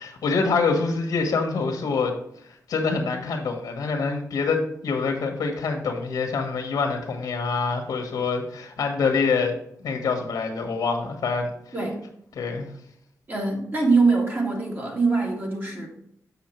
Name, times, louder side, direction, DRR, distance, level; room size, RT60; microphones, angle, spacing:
voice 1, 0.0-2.1 2.4-9.5 9.8-11.5 12.3-12.7, left 4 dB, 85° left, 3 dB, 1.3 m, -25 dB
voice 2, 13.3-15.9, right 3 dB, 35° right, -1 dB, 2.3 m, -23 dB
7.1 x 5.8 x 4.4 m, 0.71 s
wide cardioid pair, 110°, 6 cm